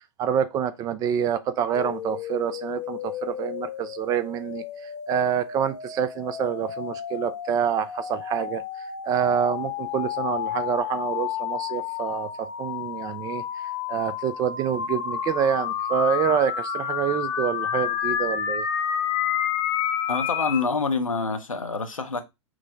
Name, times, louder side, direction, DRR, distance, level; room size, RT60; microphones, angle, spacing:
voice 1, 0.2-4.6 5.1-8.6 9.0-13.4 13.9-18.6, right 8 dB, 20° right, 0.3 m, -27 dB
sound 1, 1.8-20.6, left 9 dB, 40° left, 0.8 m, -30 dB
voice 2, 20.1-22.2, left 4 dB, 85° left, 0.7 m, -26 dB
6.1 x 2.1 x 3.7 m
figure-of-eight pair, 105°, 17 cm